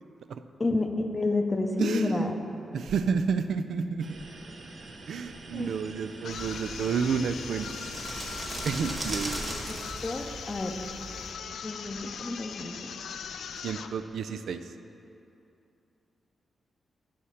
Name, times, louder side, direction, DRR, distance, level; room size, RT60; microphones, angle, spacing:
voice 1, 0.6-2.3 5.5-5.7 9.4-10.8 11.6-12.9, left 2 dB, 20° left, 4 dB, 0.6 m, -30 dB
voice 2, 1.8-2.3 2.7-4.2 5.1-7.7 8.6-9.6 13.6-14.7, right 6 dB, 80° right, 9 dB, 0.3 m, -30 dB
sound 1, 4.0-9.5, right 2 dB, 50° right, 0.7 m, -46 dB
sound 2, 6.2-14.0, left 7 dB, 85° left, 0.3 m, -40 dB
sound 3, 6.3-11.3, right 1 dB, 20° right, 1.3 m, -39 dB
10.0 x 4.2 x 6.3 m, 2.7 s
wide cardioid pair, 155°, 0 cm